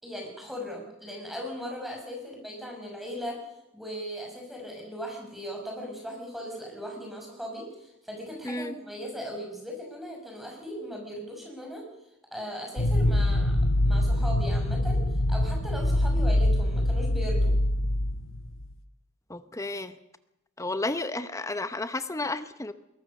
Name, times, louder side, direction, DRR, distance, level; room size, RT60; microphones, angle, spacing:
voice 1, 0.0-3.4 3.7-11.8 12.3-13.6 13.9-15.0 15.3-17.5, equal, ahead, 1 dB, 5.7 m, -38 dB
voice 2, 8.4-8.8 19.3-20.0 20.6-22.7, left 2 dB, 15° left, 11 dB, 0.8 m, -32 dB
sound 1, 12.8-18.7, left 1 dB, 75° left, 1.3 m, -24 dB
21.5 x 18.5 x 6.6 m, 0.90 s
head